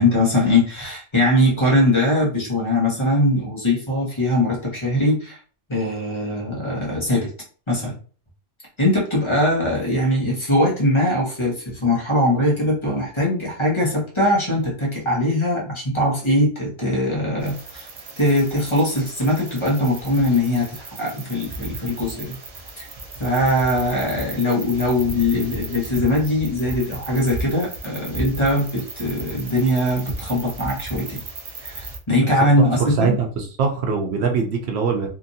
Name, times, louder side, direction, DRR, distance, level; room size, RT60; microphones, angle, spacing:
voice 1, 0.0-5.4 5.7-7.3 7.7-7.9 8.8-17.9 18.2-22.3 22.8-22.9 23.2-31.2 31.6-33.2, left 1 dB, 25° left, -5 dB, 1.1 m, -21 dB
sound 1, 17.4-32.0, right 2 dB, 45° right, 0.5 m, -35 dB
voice 2, 32.6-35.1, right 5 dB, 75° right, 3 dB, 0.9 m, -23 dB
2.9 x 2.5 x 2.6 m, 0.41 s
omnidirectional pair, 1.1 m